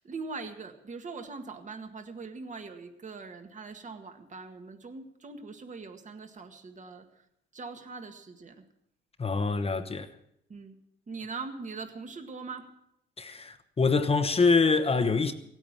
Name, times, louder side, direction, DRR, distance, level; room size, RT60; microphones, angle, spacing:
voice 1, 0.0-7.2 7.5-8.6 10.5-10.8 11.1-12.7, right 4 dB, 40° right, 1.9 m, -41 dB
voice 2, 9.2-10.1 13.2-15.3, left 4 dB, 30° left, 1.2 m, -25 dB
16.5 x 9.0 x 7.4 m
cardioid pair, 90°, 20 cm